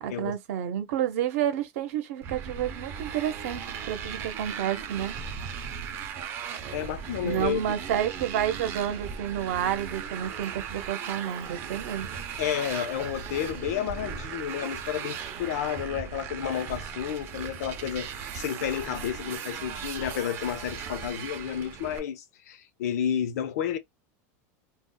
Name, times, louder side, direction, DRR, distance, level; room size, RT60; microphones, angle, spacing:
voice 1, 0.0-5.1 7.2-12.1, right 10 dB, 65° right, 0.7 m, -30 dB
Motorcycle, 2.2-22.0, right 7 dB, 25° right, 0.5 m, -37 dB
voice 2, 6.7-7.6 12.4-23.8, left 10 dB, 85° left, 0.6 m, -31 dB
2.3 x 2.1 x 3.8 m
supercardioid pair, 175°, 8 cm